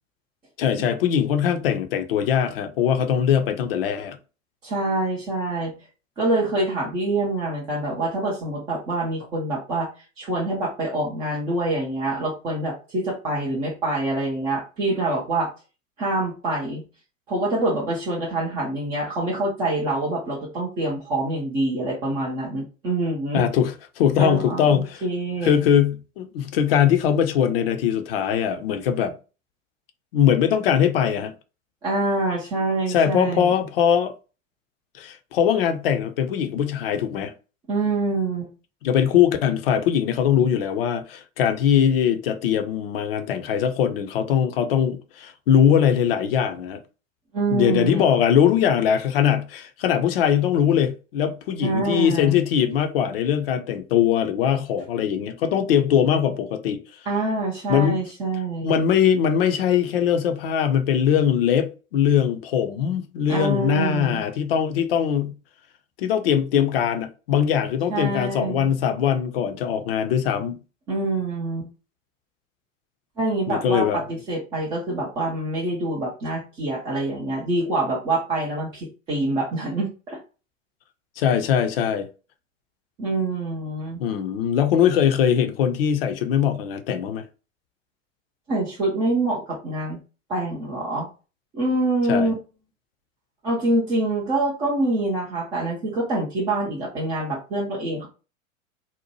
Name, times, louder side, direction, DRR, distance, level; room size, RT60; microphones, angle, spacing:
voice 1, 0.6-4.2 23.3-25.0 25.4-29.1 30.1-31.3 32.9-34.1 35.0-37.3 38.8-46.8 47.5-56.8 57.7-58.0 58.6-65.3 66.0-70.6 73.5-74.0 81.2-82.1 84.0-87.2 92.1-92.3, left 9 dB, 45° left, 0.5 m, -21 dB
voice 2, 4.6-5.7 6.2-9.9 10.2-15.5 16.0-16.8 17.3-23.4 24.2-25.6 31.8-33.5 37.7-38.5 47.3-48.0 51.6-52.4 57.1-58.8 63.3-64.2 67.9-68.7 70.9-71.7 73.2-80.2 83.0-84.0 88.5-90.0 90.3-91.1 91.5-92.3 93.4-98.1, right 2 dB, 10° right, 0.3 m, -25 dB
2.7 x 2.1 x 2.9 m
figure-of-eight pair, 90°, 40 cm